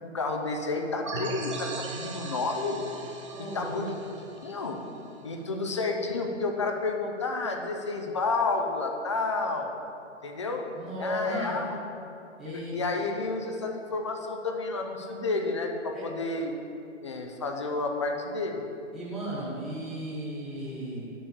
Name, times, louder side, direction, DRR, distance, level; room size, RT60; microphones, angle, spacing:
voice 1, 0.0-2.8 3.4-3.8 4.4-4.8 5.2-9.7 10.2-10.7 11.0-11.8 12.5-16.5 17.0-18.7, left 3 dB, 25° left, 3 dB, 0.4 m, -30 dB
sound 1, 1.0-5.5, right 3 dB, 25° right, 0.5 m, -39 dB
voice 2, 3.3-3.7 10.7-11.7 12.4-12.8 15.9-16.1 18.9-21.2, equal, ahead, -10 dB, 1.2 m, -35 dB
10.0 x 3.6 x 6.8 m, 2.7 s
hypercardioid pair, 160°, 38 cm